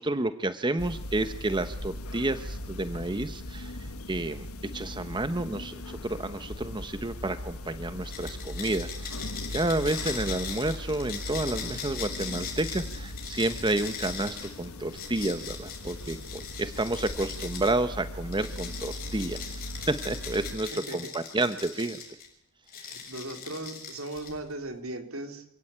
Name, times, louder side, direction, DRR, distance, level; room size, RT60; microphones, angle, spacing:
voice 1, 0.0-4.5 4.7-9.3 9.5-22.0, right 2 dB, 20° right, 11 dB, 1.0 m, -30 dB
sound 1, 0.8-20.6, left 1 dB, 85° left, 1.4 m, -39 dB
sound 2, 8.0-17.8 18.3-22.3 22.7-24.5, left 7 dB, 45° left, 6.8 m, -40 dB
voice 2, 22.7-25.4, right 2 dB, 70° right, 6 dB, 4.0 m, -38 dB
28.0 x 17.0 x 8.8 m, 0.74 s
head